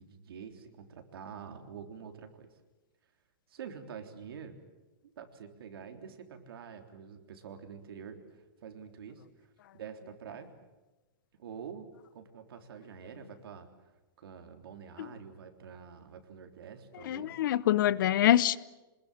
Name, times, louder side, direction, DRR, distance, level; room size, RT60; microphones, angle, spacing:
voice 1, 0.0-2.5 3.5-4.6 5.0-10.5 11.4-13.7 14.2-17.4, right 7 dB, 80° right, 3.6 m, -47 dB
voice 2, 17.1-18.6, left 12 dB, 60° left, 0.8 m, -25 dB
25.5 x 21.0 x 8.6 m
supercardioid pair, 165°, 12 cm